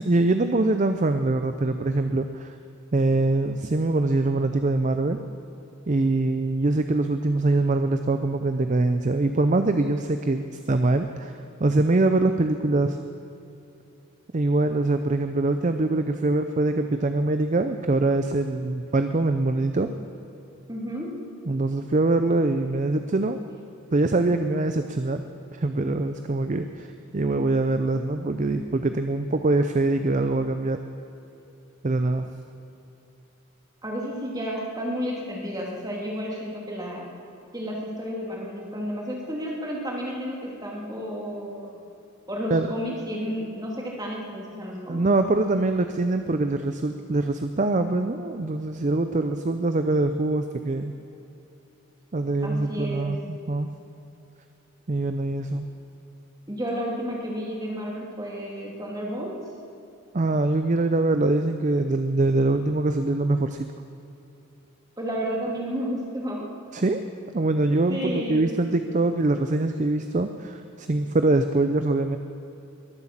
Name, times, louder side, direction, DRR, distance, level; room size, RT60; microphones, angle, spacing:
voice 1, 0.0-2.6 2.9-5.2 5.9-11.3 11.6-13.0 14.3-19.9 21.5-23.4 23.9-25.2 25.5-30.8 31.8-32.3 42.5-42.7 44.9-50.9 52.1-53.7 54.9-55.7 60.1-63.7 66.7-67.0 67.3-72.2, right 2 dB, 35° right, 8 dB, 0.5 m, -23 dB
voice 2, 20.7-21.1 33.8-37.1 37.5-41.7 42.3-45.0 52.4-53.2 56.5-59.3 65.0-66.5 67.4-68.5, equal, 20° right, -2 dB, 2.5 m, -31 dB
21.5 x 8.1 x 7.4 m, 2.8 s
head